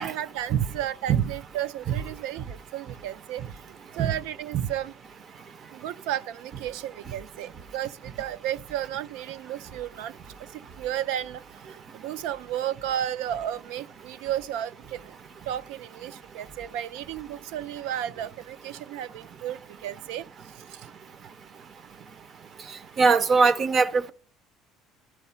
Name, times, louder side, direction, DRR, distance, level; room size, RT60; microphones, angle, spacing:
voice 1, 0.0-4.9 5.7-15.2 15.5-20.9, right 11 dB, 90° right, 0.4 m, -34 dB
voice 2, 23.0-24.1, right 5 dB, 30° right, 0.4 m, -21 dB
11.5 x 4.8 x 5.6 m
cardioid pair, 170°, 0 cm